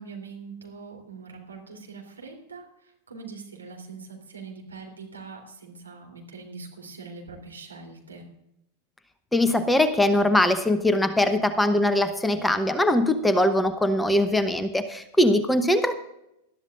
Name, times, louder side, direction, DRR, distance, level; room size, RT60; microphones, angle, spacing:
voice 1, 0.0-8.2, right 4 dB, 75° right, 2 dB, 3.3 m, -42 dB
voice 2, 9.3-16.0, left 1 dB, 5° left, 11 dB, 0.9 m, -21 dB
20.0 x 12.5 x 2.5 m, 0.83 s
figure-of-eight pair, 90°, 0 cm